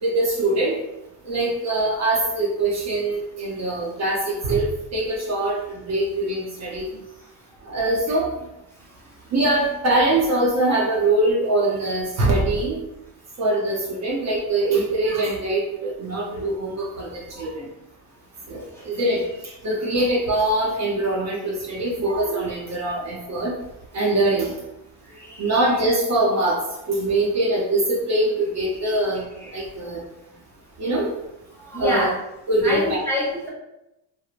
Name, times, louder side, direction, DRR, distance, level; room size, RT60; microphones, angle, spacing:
voice 1, 0.0-0.8 1.2-6.9 7.7-8.4 9.3-12.8 13.4-17.7 18.5-23.5 23.9-24.5 25.4-26.6 26.9-29.2 29.5-30.0 30.8-31.1 31.8-32.1 32.5-33.0, right 2 dB, 35° right, -3 dB, 0.7 m, -23 dB
voice 2, 25.0-25.6 29.4-29.8 31.5-32.1 32.6-33.5, left 1 dB, 5° left, -7 dB, 0.7 m, -27 dB
3.2 x 2.0 x 2.4 m, 0.90 s
supercardioid pair, 100°, 45 cm